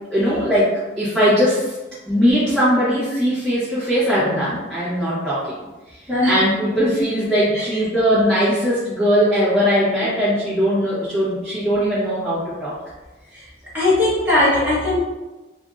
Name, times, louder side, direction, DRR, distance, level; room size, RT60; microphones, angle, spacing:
voice 1, 0.1-0.7 1.0-1.7 2.1-5.4 6.2-12.7, equal, 5° left, -14 dB, 0.9 m, -19 dB
voice 2, 13.7-15.0, left 1 dB, 10° right, -10 dB, 1.1 m, -19 dB
3.4 x 2.4 x 2.4 m, 1.1 s
head